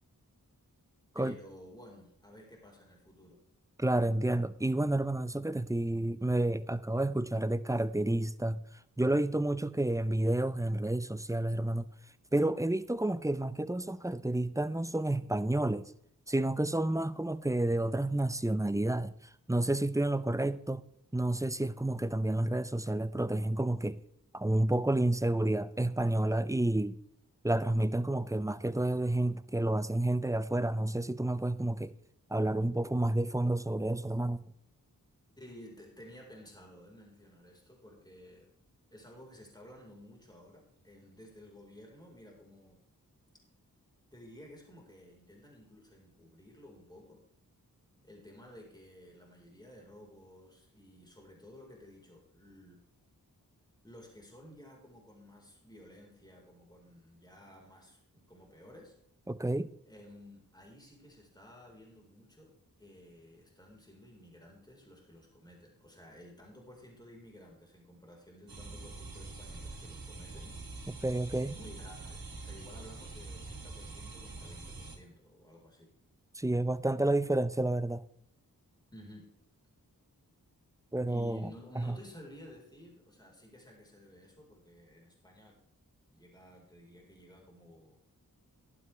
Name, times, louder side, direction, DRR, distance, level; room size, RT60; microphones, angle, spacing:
voice 1, 1.1-3.4 35.4-38.5 38.9-42.8 44.1-47.2 48.0-52.8 53.8-59.0 59.9-70.6 71.3-75.9 78.9-79.4 81.1-85.6 86.1-88.0, left 1 dB, 10° left, 4.3 m, -54 dB
voice 2, 3.8-8.6 9.0-11.9 12.3-15.9 16.3-19.1 19.5-20.8 21.1-24.0 24.3-27.0 27.4-31.9 32.3-34.4 59.3-59.7 71.0-71.5 76.4-78.0 80.9-81.4 81.8-82.0, right 1 dB, 10° right, 0.6 m, -30 dB
sound 1, 68.5-75.0, right 3 dB, 75° right, 2.4 m, -45 dB
12.5 x 12.0 x 3.3 m
cardioid pair, 45°, 35 cm